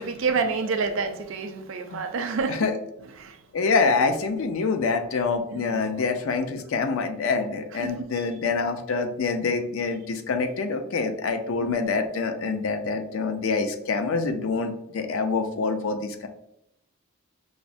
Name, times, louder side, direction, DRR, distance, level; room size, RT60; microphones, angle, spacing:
voice 1, 0.0-3.4 5.5-5.9 7.7-8.4 11.6-12.1, right 4 dB, 60° right, 8 dB, 0.4 m, -30 dB
voice 2, 3.5-16.3, left 4 dB, 65° left, 7 dB, 0.4 m, -26 dB
4.9 x 2.0 x 2.5 m, 0.80 s
head